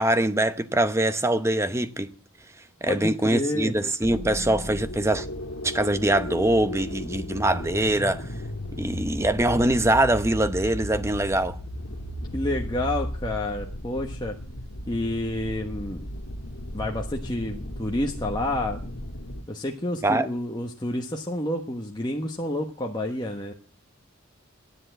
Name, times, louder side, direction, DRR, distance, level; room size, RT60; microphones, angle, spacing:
voice 1, 0.0-2.1 2.8-5.3 5.6-8.3 8.7-11.6 20.0-20.3, right 1 dB, 15° right, 0.8 m, -23 dB
voice 2, 2.9-3.7 12.3-14.4 14.9-16.0 16.7-18.9 19.5-23.5, left 1 dB, 20° left, 1.2 m, -29 dB
sound 1, 4.0-19.4, equal, 85° left, 1.9 m, -35 dB
14.0 x 10.0 x 7.9 m
head